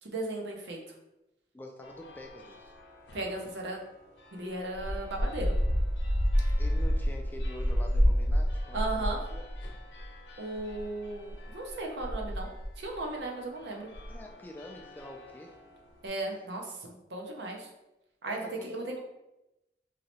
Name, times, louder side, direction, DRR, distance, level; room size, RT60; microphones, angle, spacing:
voice 1, 0.0-0.8 3.1-3.9 4.3-5.5 8.7-9.2 10.4-13.9 16.0-17.7 18.2-19.0, right 2 dB, 80° right, 1 dB, 0.6 m, -36 dB
voice 2, 1.5-2.7 6.6-9.4 14.1-15.6 18.2-18.7, left 1 dB, 10° left, 2 dB, 0.3 m, -46 dB
sound 1, 1.8-3.7 4.2-15.7, equal, 90° left, 0.6 m, -31 dB
3.0 x 2.7 x 2.9 m, 0.93 s
head